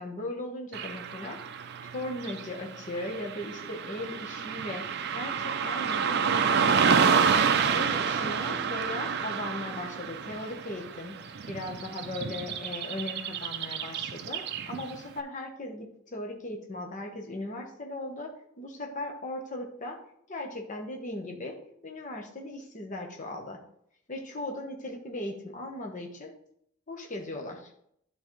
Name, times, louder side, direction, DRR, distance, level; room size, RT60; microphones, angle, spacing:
voice 1, 0.0-1.4 1.9-7.1 7.7-11.2 11.5-20.0 20.3-23.6 24.1-26.4 26.9-27.7, left 1 dB, 35° left, 1 dB, 1.0 m, -38 dB
Car passing by / Traffic noise roadway noise, 0.7-15.0, right 6 dB, 50° right, 0.4 m, -29 dB
11.0 x 4.0 x 3.1 m, 0.71 s
head